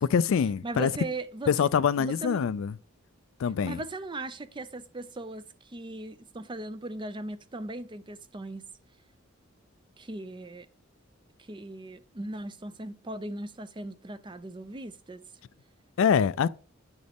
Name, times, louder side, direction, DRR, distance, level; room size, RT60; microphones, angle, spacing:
voice 1, 0.0-0.9 1.5-2.8 3.4-3.8 16.0-16.5, left 7 dB, 65° left, 0.4 m, -24 dB
voice 2, 0.6-1.5 2.0-2.5 3.6-8.7 10.0-10.7 11.4-15.2, right 2 dB, 25° right, 0.5 m, -38 dB
9.6 x 6.2 x 3.5 m
head